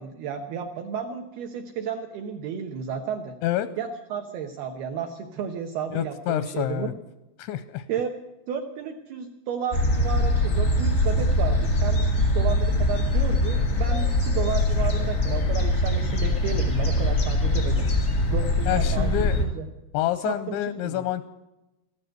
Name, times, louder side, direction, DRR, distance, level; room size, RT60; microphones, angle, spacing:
voice 1, 0.0-3.3 3.8-6.9 7.9-8.1 8.5-17.9 18.3-19.7 20.2-20.6 20.8-21.0, right 7 dB, 75° right, 4 dB, 2.4 m, -32 dB
voice 2, 5.9-6.9 7.4-7.8 18.7-19.4 19.9-21.3, left 12 dB, 85° left, 13 dB, 2.6 m, -27 dB
sound 1, 9.7-19.4, left 1 dB, 45° left, 1.0 m, -23 dB
15.0 x 12.0 x 7.8 m, 0.97 s
omnidirectional pair, 5.8 m